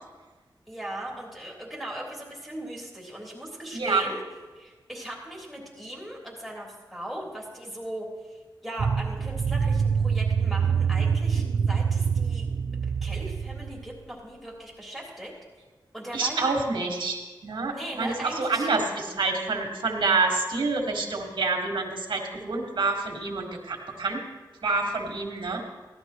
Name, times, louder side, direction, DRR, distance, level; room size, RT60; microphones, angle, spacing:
voice 1, 0.7-4.2 4.5-12.5 13.0-15.3 15.9-16.5 17.7-18.7, right 1 dB, ahead, -4 dB, 3.4 m, -38 dB
sound 1, 8.8-13.9, right 6 dB, 70° right, 0.4 m, -25 dB
voice 2, 16.1-24.2 24.6-25.6, right 3 dB, 90° right, 1 dB, 1.8 m, -27 dB
16.5 x 12.0 x 3.0 m, 1.3 s
wide cardioid pair, 95°, 8 cm